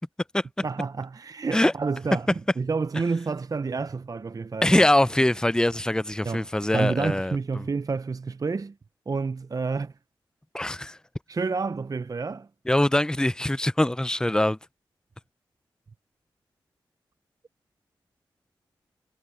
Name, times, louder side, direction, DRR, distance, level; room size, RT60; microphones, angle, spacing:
voice 1, 0.6-2.3 2.6-4.9 5.2-5.3 6.2-6.5 6.7-8.7 9.1-9.9 11.3-12.5, right 4 dB, 40° right, 0.6 m, -29 dB
voice 2, 4.6-7.6 10.5-11.0 12.7-14.6, left 1 dB, 10° left, 0.7 m, -23 dB
cardioid pair, 45°, 9 cm